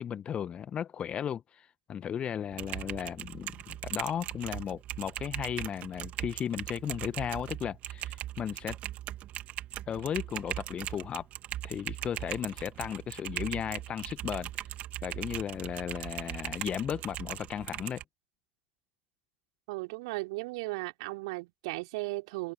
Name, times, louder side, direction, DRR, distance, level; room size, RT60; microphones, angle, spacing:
voice 1, 0.0-8.8 9.9-11.3 11.6-14.5 15.0-18.0, left 9 dB, 30° left, 1.6 m, -35 dB
Typing, 2.5-18.0, right 13 dB, 40° right, 3.4 m, -39 dB
voice 2, 19.7-22.5, right 24 dB, 60° right, 4.6 m, -36 dB
figure-of-eight pair, 80°, 4 cm